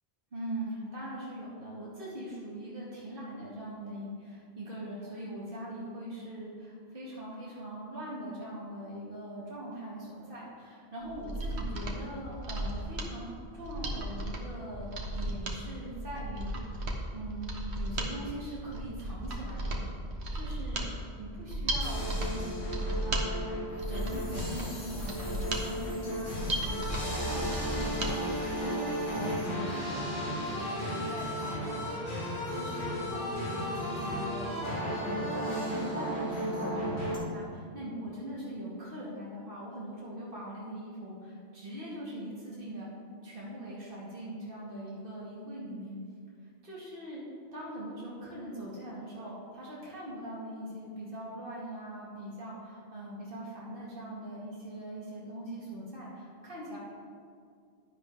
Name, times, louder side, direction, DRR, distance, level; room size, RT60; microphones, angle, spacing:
voice 1, 0.3-14.9 15.1-16.6 17.1-19.8 20.3-20.8 21.2-23.2 23.9-28.8 29.1-32.1 32.5-42.9 43.2-46.0 46.4-47.2 47.5-56.8, right 1 dB, 50° right, -7 dB, 2.4 m, -41 dB
Mechanisms, 11.1-28.1 28.5-28.6, right 1 dB, 70° right, 1.5 m, -35 dB
sound 1, 21.8-37.2, equal, 45° left, 2.3 m, -34 dB
11.0 x 10.5 x 3.7 m, 2.3 s
omnidirectional pair, 1.1 m